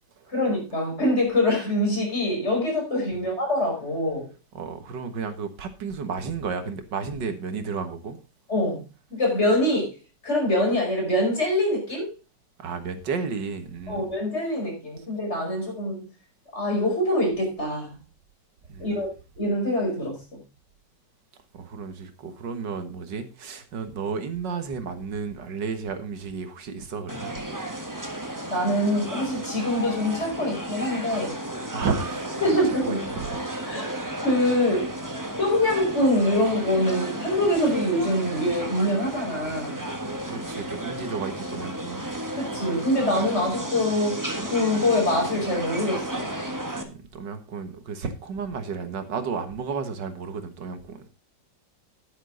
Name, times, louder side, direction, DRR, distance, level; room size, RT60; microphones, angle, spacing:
voice 1, 0.3-4.3 8.5-8.8 9.1-10.0 10.2-12.1 13.9-16.1 16.5-18.0 18.8-19.1 19.4-20.4 28.5-31.4 32.4-33.0 33.7-33.9 34.2-34.9 35.4-39.8 42.4-46.3, left 1 dB, 40° left, 5.6 m, -24 dB
voice 2, 4.5-8.2 12.6-14.1 15.0-15.1 18.7-19.0 21.5-27.4 31.7-32.3 32.6-33.3 40.0-42.1 46.8-51.1, right 5 dB, 90° right, 2.1 m, -32 dB
sound 1, 27.1-46.8, right 1 dB, 10° right, 1.3 m, -33 dB
10.5 x 10.0 x 3.8 m
omnidirectional pair, 1.9 m